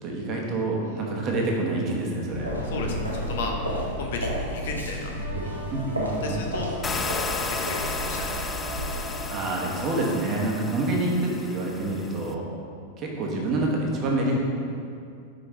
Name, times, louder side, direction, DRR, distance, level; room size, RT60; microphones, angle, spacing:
voice 1, 0.0-2.5 5.7-6.6 9.3-12.4 13.0-14.4, right 2 dB, 35° right, -2 dB, 1.1 m, -27 dB
sound 1, 2.2-9.2, equal, 85° right, 0.9 m, -32 dB
voice 2, 2.7-3.6 4.0-5.1 5.3-5.5 6.2-6.7 7.0-7.1 7.5-8.3, left 4 dB, 55° left, 1 dB, 0.7 m, -34 dB
sound 2, 5.1-10.9, right 1 dB, 75° left, 1.3 m, -40 dB
sound 3, 6.8-12.3, left 4 dB, 15° left, 0.3 m, -34 dB
5.3 x 4.6 x 4.2 m, 2.4 s
figure-of-eight pair, 90°, 0 cm